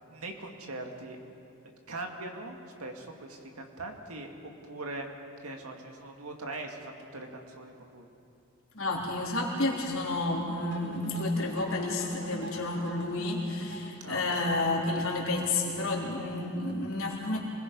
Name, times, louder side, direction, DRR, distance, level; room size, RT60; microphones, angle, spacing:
voice 1, 0.1-1.2 1.9-5.1 5.4-8.1 14.0-14.4, right 2 dB, 85° right, 3 dB, 2.2 m, -41 dB
voice 2, 8.7-17.4, left 2 dB, 65° left, -2 dB, 3.8 m, -30 dB
sound 1, 10.7-15.8, right 2 dB, 50° right, 2.2 m, -44 dB
27.5 x 21.0 x 5.4 m, 2.7 s
head